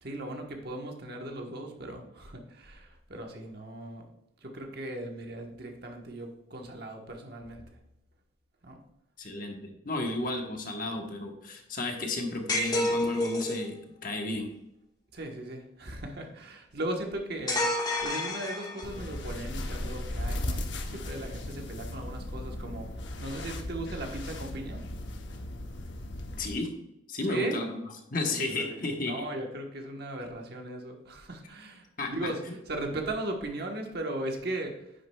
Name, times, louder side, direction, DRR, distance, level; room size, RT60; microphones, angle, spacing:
voice 1, 0.0-4.1 4.4-7.6 8.6-8.8 15.1-17.7 18.0-20.7 20.9-22.9 23.2-24.8 27.2-27.6 28.2-32.4 32.7-34.7, right 1 dB, 50° right, 2 dB, 1.2 m, -37 dB
voice 2, 9.2-14.5 26.4-26.7 27.1-27.8 28.1-29.1 32.0-32.5, left 2 dB, 45° left, 3 dB, 1.2 m, -33 dB
sound 1, 12.5-13.7 17.5-19.1, left 1 dB, 20° left, 1.1 m, -29 dB
sound 2, 18.8-26.6, left 1 dB, 65° left, 0.9 m, -37 dB
9.6 x 6.6 x 2.3 m, 0.86 s
head